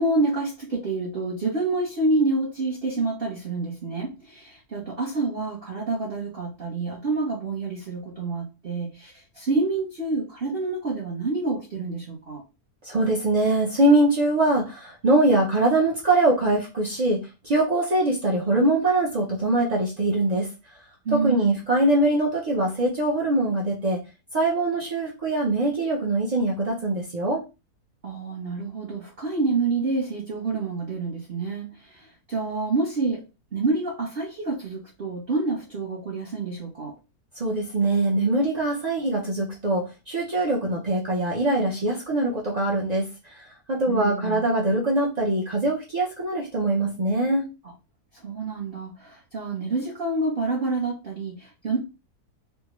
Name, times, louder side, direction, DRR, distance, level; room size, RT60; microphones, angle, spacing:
voice 1, 0.0-12.4 21.0-21.6 28.0-33.2 33.5-36.9 43.9-44.5 48.2-51.8, right 3 dB, 45° right, 0.8 m, -28 dB
voice 2, 12.9-20.5 21.1-24.0 24.3-27.4 37.4-43.1 43.7-47.5, right 2 dB, 70° right, 0.3 m, -23 dB
3.6 x 2.1 x 3.0 m
omnidirectional pair, 1.8 m